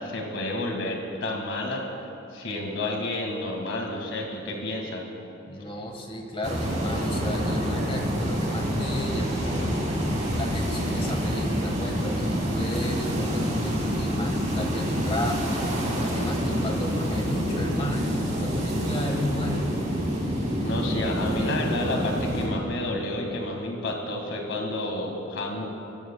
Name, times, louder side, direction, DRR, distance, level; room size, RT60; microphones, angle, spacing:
voice 1, 0.0-1.8 2.3-5.0 20.6-25.7, left 1 dB, 80° left, 1 dB, 1.7 m, -30 dB
voice 2, 5.5-9.7 10.3-15.6 16.0-19.7, left 1 dB, 30° left, 2 dB, 1.3 m, -34 dB
sound 1, 6.4-22.5, equal, 40° right, 2.8 m, -27 dB
19.5 x 14.5 x 2.2 m, 2.8 s
head